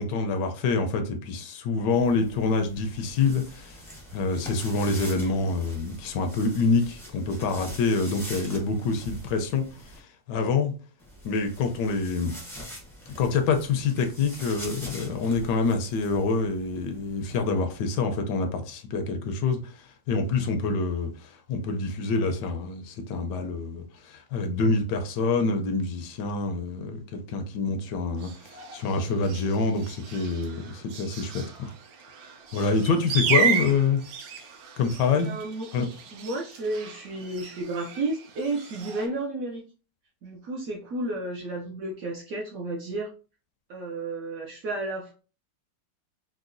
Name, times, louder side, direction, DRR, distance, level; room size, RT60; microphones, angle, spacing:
voice 1, 0.0-3.8 4.1-10.7 11.2-12.3 13.2-31.7 32.5-34.0 34.8-35.3 35.7-35.9, left 4 dB, 75° left, 1.2 m, -26 dB
sound 1, 1.9-10.0 11.0-17.5, equal, 5° left, 0.3 m, -44 dB
sound 2, 28.2-39.1, right 7 dB, 85° right, 1.4 m, -33 dB
voice 2, 35.2-35.7 36.1-39.6 40.2-43.1 43.7-45.1, right 2 dB, 70° right, 0.8 m, -32 dB
4.7 x 2.1 x 2.5 m
omnidirectional pair, 2.0 m